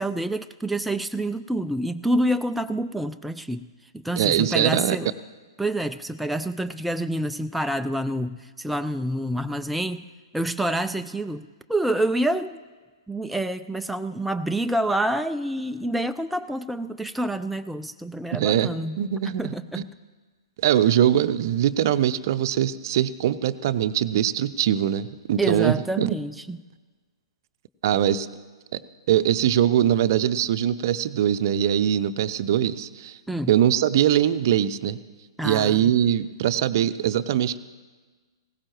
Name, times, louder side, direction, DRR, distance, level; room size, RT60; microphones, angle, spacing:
voice 1, 0.0-3.7 3.9-5.1 5.6-10.1 10.3-12.6 13.1-19.0 19.2-19.9 25.4-26.6 33.3-33.5 35.4-35.9, right 1 dB, ahead, 8 dB, 0.3 m, -27 dB
voice 2, 4.2-5.0 18.3-18.7 19.0-19.8 20.6-26.1 27.8-28.3 28.7-28.8 29.1-33.2 33.5-35.0 35.4-37.6, right 10 dB, 45° right, 13 dB, 0.6 m, -22 dB
20.5 x 17.0 x 3.1 m, 1.3 s
figure-of-eight pair, 115°, 3 cm